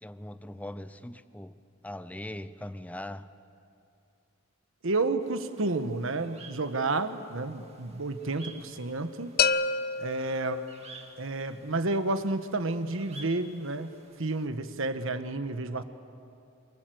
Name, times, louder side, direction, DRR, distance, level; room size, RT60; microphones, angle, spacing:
voice 1, 0.0-1.6 1.8-3.3 15.7-15.8, left 1 dB, 5° left, 13 dB, 0.6 m, -40 dB
voice 2, 4.8-9.3 10.0-10.7 11.2-13.9 14.2-15.8, right 2 dB, 65° right, 10 dB, 1.3 m, -30 dB
sound 1, 5.2-14.5, right 3 dB, 30° right, 2.0 m, -53 dB
sound 2, 9.4-11.2, left 5 dB, 50° left, 0.6 m, -29 dB
27.0 x 24.5 x 7.8 m, 2.6 s
head